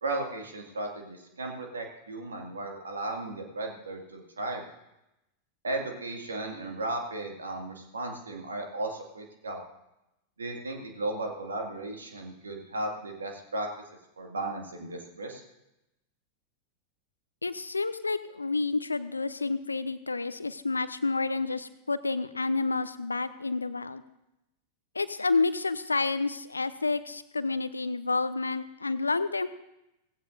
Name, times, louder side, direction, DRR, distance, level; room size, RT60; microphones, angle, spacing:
voice 1, 0.0-4.7 5.6-9.6 10.4-13.7 14.2-15.4, right 2 dB, 70° right, 2 dB, 2.3 m, -35 dB
voice 2, 17.4-24.0 24.9-29.5, left 3 dB, 80° left, 14 dB, 0.6 m, -29 dB
17.5 x 15.5 x 2.7 m, 0.89 s
figure-of-eight pair, 90°, 0 cm